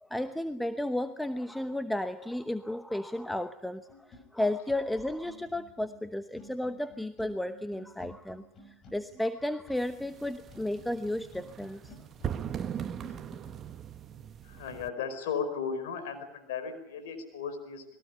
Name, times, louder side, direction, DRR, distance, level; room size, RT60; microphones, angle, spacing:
voice 1, 0.0-12.0, left 1 dB, 5° left, 10 dB, 1.0 m, -33 dB
sound 1, 3.9-13.5, left 2 dB, 40° left, 5.7 m, -53 dB
sound 2, 9.7-14.9, right 9 dB, 35° right, 1.2 m, -39 dB
voice 2, 14.4-17.8, left 6 dB, 75° left, 6 dB, 5.0 m, -35 dB
21.5 x 17.5 x 9.9 m, 0.90 s
supercardioid pair, 105°, 0 cm